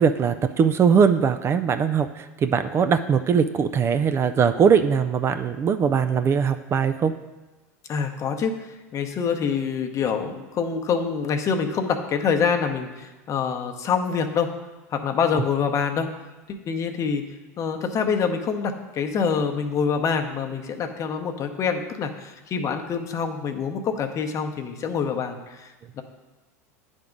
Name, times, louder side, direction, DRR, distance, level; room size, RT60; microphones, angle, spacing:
voice 1, 0.0-7.1, right 6 dB, 30° right, 9 dB, 0.4 m, -21 dB
voice 2, 7.9-14.5 14.9-16.1 16.5-17.2 17.6-26.0, left 6 dB, 40° left, 5 dB, 0.8 m, -26 dB
9.4 x 3.6 x 5.2 m, 1.1 s
hypercardioid pair, 85°, 9 cm